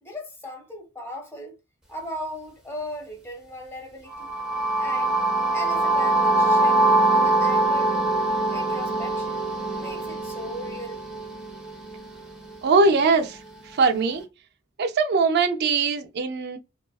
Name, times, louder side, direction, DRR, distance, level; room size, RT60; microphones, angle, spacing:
voice 1, 0.0-1.6 1.9-4.3 4.8-5.2 5.5-8.1 8.5-9.4 9.7-11.0, left 1 dB, 15° left, 0.9 m, -38 dB
sound 1, 4.1-12.0, right 2 dB, 5° right, 0.5 m, -23 dB
voice 2, 12.6-13.4 13.7-14.2 14.8-16.6, right 4 dB, 55° right, 0.4 m, -21 dB
2.3 x 2.3 x 2.3 m
head